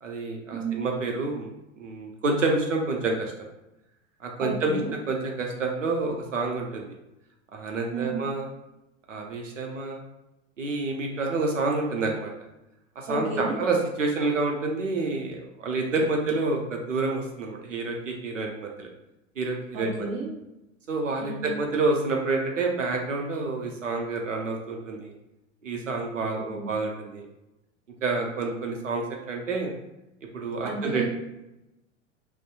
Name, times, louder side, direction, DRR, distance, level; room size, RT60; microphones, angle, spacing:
voice 1, 0.0-3.3 4.2-6.9 7.5-8.5 9.1-10.0 10.6-12.3 13.0-18.9 19.4-20.1 20.9-25.1 25.6-27.3 28.0-29.7 30.3-31.0, right 3 dB, 90° right, 2 dB, 0.6 m, -28 dB
voice 2, 0.5-0.9 4.4-4.9 7.9-8.3 13.1-13.5 19.7-20.3 21.2-21.5 26.2-26.7 30.6-31.1, right 3 dB, 40° right, -4 dB, 1.0 m, -32 dB
2.6 x 2.0 x 2.4 m, 0.93 s
figure-of-eight pair, 90°, 37 cm